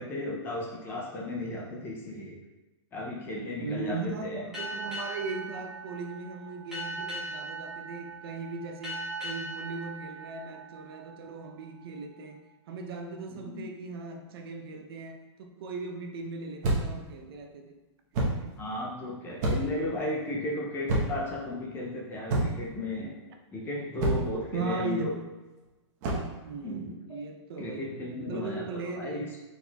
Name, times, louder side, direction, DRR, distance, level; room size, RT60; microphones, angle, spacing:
voice 1, 0.0-2.4 2.9-4.5 13.3-13.7 18.6-23.1 23.5-25.2 26.6-27.2 27.6-29.3, left 2 dB, 15° left, -2 dB, 0.4 m, -35 dB
voice 2, 3.6-17.8 18.2-18.5 24.5-25.3 26.4-27.9 28.2-29.3, right 4 dB, 55° right, 4 dB, 0.5 m, -38 dB
Boat Water vehicle, 4.5-11.6, right 1 dB, 5° right, 1.2 m, -39 dB
sound 1, 16.6-17.0 18.1-18.5 19.4-19.8 20.9-21.3 22.3-22.7 24.0-24.4 26.0-26.3, right 2 dB, 35° right, 0.9 m, -28 dB
4.2 x 4.1 x 2.2 m, 1.1 s
hypercardioid pair, 155°, 15 cm